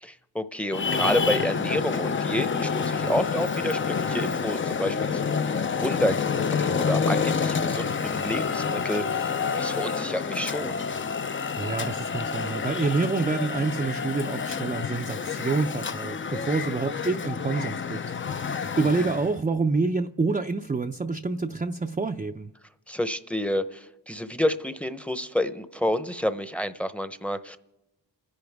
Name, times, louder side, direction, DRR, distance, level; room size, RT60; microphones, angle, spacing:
voice 1, 0.0-10.8 19.0-19.1 22.9-27.6, equal, 5° left, 0.8 m, -29 dB
Traffic noise roadway noise, 0.7-19.4, left 5 dB, 30° left, 0.5 m, -28 dB
voice 2, 11.6-18.0 18.3-22.5, right 3 dB, 20° right, 0.5 m, -27 dB
28.5 x 10.5 x 3.5 m
cardioid pair, 55°, 44 cm